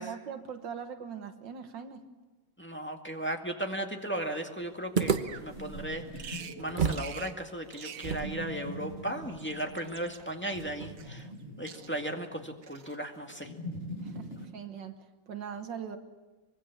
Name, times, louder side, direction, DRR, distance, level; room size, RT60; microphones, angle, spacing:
voice 1, 0.0-2.1 14.0-16.0, right 7 dB, 80° right, 7 dB, 2.0 m, -41 dB
voice 2, 2.6-11.3 11.6-13.5, right 1 dB, 5° left, 3 dB, 1.8 m, -36 dB
sound 1, 3.8-14.5, equal, 30° left, 6.5 m, -44 dB
Opening guitar case and taking the guitar, 4.9-7.1 7.4-7.5 8.0-11.2, right 6 dB, 30° right, 1.0 m, -34 dB
Bird vocalization bird call bird song, 5.1-5.5 6.2-6.6 6.9-7.4 7.7-8.2 9.2-10.2 11.0-11.4 11.7-12.1 12.6-13.0, right 7 dB, 55° right, 1.3 m, -46 dB
24.5 x 22.5 x 7.3 m, 1.2 s
omnidirectional pair, 2.0 m